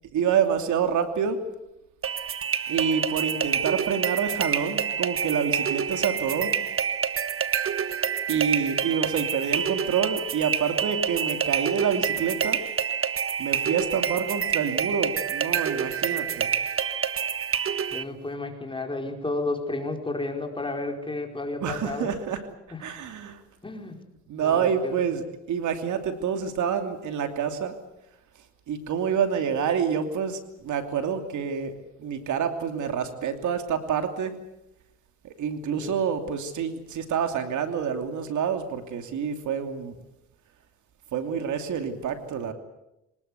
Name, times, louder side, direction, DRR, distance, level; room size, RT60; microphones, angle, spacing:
voice 1, 0.1-1.4 2.7-6.5 8.3-12.6 13.4-16.5 21.6-22.4 22.8-23.4 24.3-27.7 28.7-31.7 32.0-34.3 35.2-39.9 41.1-42.5, right 7 dB, 75° right, 7 dB, 2.9 m, -27 dB
sound 1, 2.0-18.0, right 7 dB, 45° right, 1.4 m, -27 dB
voice 2, 17.9-22.1 22.7-22.8 23.6-24.0 24.4-25.0 35.8-35.9, left 2 dB, 15° left, 3 dB, 4.6 m, -32 dB
25.0 x 20.0 x 8.2 m, 0.88 s
cardioid pair, 90°, 30 cm